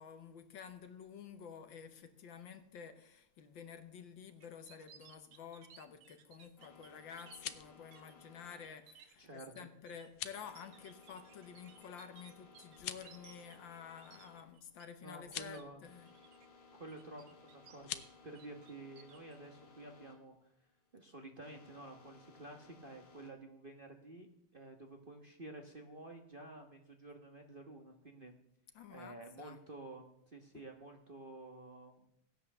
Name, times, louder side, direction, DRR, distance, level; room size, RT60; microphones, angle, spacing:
voice 1, 0.0-16.1 28.7-29.6 30.5-30.7, left 7 dB, 65° left, 9 dB, 1.7 m, -51 dB
sound 1, 4.4-7.4 7.9-8.1 8.4-14.9 15.1-15.6 16.1-16.5 16.9-18.1 18.4-19.4, right 8 dB, 80° right, 2.1 m, -60 dB
sound 2, 6.6-23.3, left 4 dB, 35° left, 2.3 m, -62 dB
sound 3, 7.2-7.8 10.1-10.5 12.7-13.2 15.2-15.5 17.8-18.1, left 11 dB, 85° left, 1.7 m, -44 dB
voice 2, 9.2-9.7 15.0-15.8 16.7-20.4 20.9-28.3 28.9-32.1, right 2 dB, 30° right, 2 dB, 1.2 m, -51 dB
15.5 x 9.8 x 6.8 m, 0.75 s
omnidirectional pair, 2.4 m